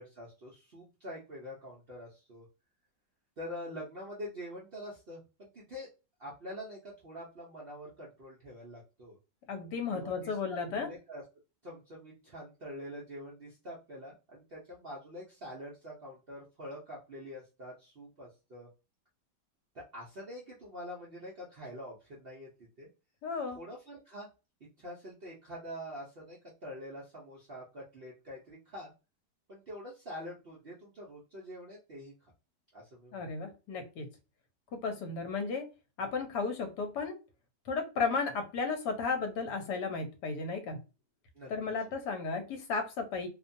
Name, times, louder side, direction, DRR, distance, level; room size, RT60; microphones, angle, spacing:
voice 1, 0.0-2.5 3.4-5.9 6.2-9.2 9.9-11.2 11.6-18.7 19.7-22.5 22.8-22.9 23.5-24.3 24.8-28.9 29.5-32.1 32.7-33.2 41.3-41.5, equal, 70° right, -4 dB, 0.5 m, -45 dB
voice 2, 9.5-10.9 23.2-23.6 33.1-34.1 34.8-35.6 36.0-37.1 37.7-40.8 41.5-43.3, left 4 dB, 70° left, 5 dB, 1.3 m, -34 dB
2.9 x 2.2 x 2.6 m, 0.30 s
omnidirectional pair, 1.9 m